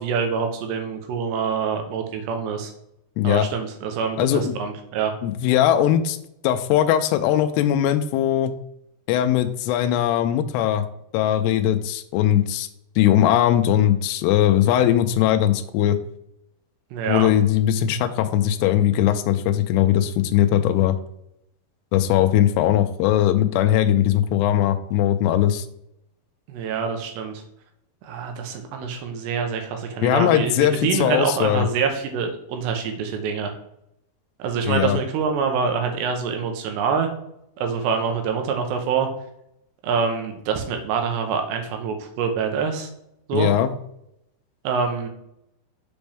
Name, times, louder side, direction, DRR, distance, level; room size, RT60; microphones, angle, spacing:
voice 1, 0.0-2.7 3.2-5.1 16.9-17.3 26.5-27.4 28.0-33.5 34.4-37.1 37.6-39.1 39.8-42.9 43.3-43.5 44.6-45.1, right 6 dB, 90° right, 4 dB, 3.1 m, -25 dB
voice 2, 3.2-3.5 4.2-4.5 5.2-6.2 6.4-8.5 9.1-10.9 11.1-12.7 13.0-16.0 17.1-21.0 21.9-25.7 30.0-31.7 34.7-35.0 43.3-43.7, left 11 dB, 85° left, 7 dB, 2.6 m, -20 dB
7.0 x 5.2 x 3.5 m, 0.79 s
omnidirectional pair, 4.8 m